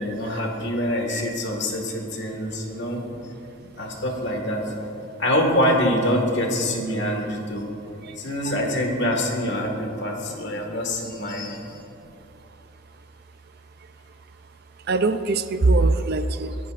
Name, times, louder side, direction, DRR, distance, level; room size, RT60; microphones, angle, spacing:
voice 1, 0.0-3.0 3.8-4.6 5.2-7.7 8.2-11.8, equal, 55° left, 2 dB, 1.8 m, -25 dB
voice 2, 14.9-16.6, right 3 dB, 50° right, 11 dB, 0.5 m, -23 dB
24.0 x 11.0 x 2.5 m, 2.9 s
head